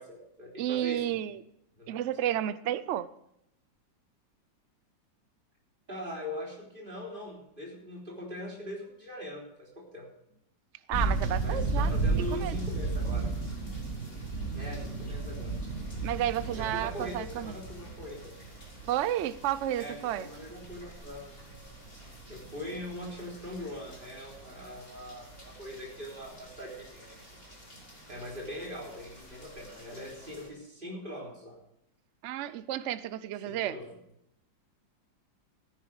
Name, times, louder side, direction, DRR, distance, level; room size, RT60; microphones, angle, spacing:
voice 1, 0.0-1.2 1.8-2.0 5.9-10.1 11.4-13.3 14.5-15.6 16.6-18.4 19.8-21.4 22.3-27.4 28.1-31.6 33.4-33.9, left 1 dB, 25° right, -2 dB, 3.8 m, -41 dB
voice 2, 0.6-1.4 1.9-3.1 10.9-12.6 16.0-17.5 18.8-20.3 32.2-33.8, right 12 dB, 90° right, 15 dB, 0.6 m, -31 dB
sound 1, 10.9-30.5, right 3 dB, 30° left, 3.7 m, -36 dB
14.5 x 10.0 x 4.8 m, 0.78 s
omnidirectional pair, 2.0 m